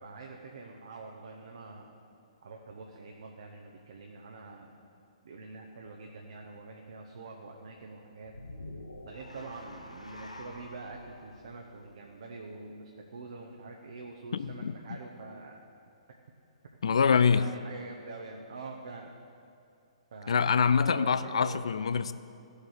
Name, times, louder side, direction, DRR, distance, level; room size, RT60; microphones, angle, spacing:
voice 1, 0.0-1.9 2.4-4.8 5.2-8.3 9.1-15.6 17.3-19.1 20.1-21.6, right 3 dB, 55° right, 1 dB, 0.9 m, -45 dB
sound 1, 8.2-12.6, left 1 dB, 80° left, 1.1 m, -48 dB
voice 2, 14.3-14.7 16.8-17.4 20.3-22.1, left 6 dB, 55° left, 14 dB, 0.4 m, -25 dB
15.5 x 6.6 x 4.8 m, 2.4 s
figure-of-eight pair, 120°, 4 cm